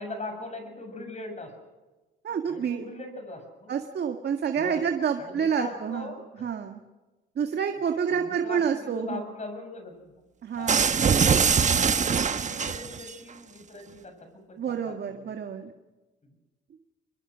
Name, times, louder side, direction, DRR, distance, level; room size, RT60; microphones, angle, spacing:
voice 1, 0.0-1.6 2.5-3.7 4.6-4.8 5.2-6.5 8.1-10.1 10.6-15.7 16.2-16.4, left 2 dB, 35° left, 6 dB, 7.3 m, -41 dB
voice 2, 2.2-2.8 3.7-6.1 6.4-6.8 7.4-9.2 10.4-11.1 14.6-15.7, right 7 dB, 55° right, 5 dB, 1.8 m, -28 dB
sound 1, 10.7-13.1, right 6 dB, 40° right, 1.1 m, -23 dB
24.5 x 22.0 x 6.2 m, 1.2 s
cardioid pair, 90°, 20 cm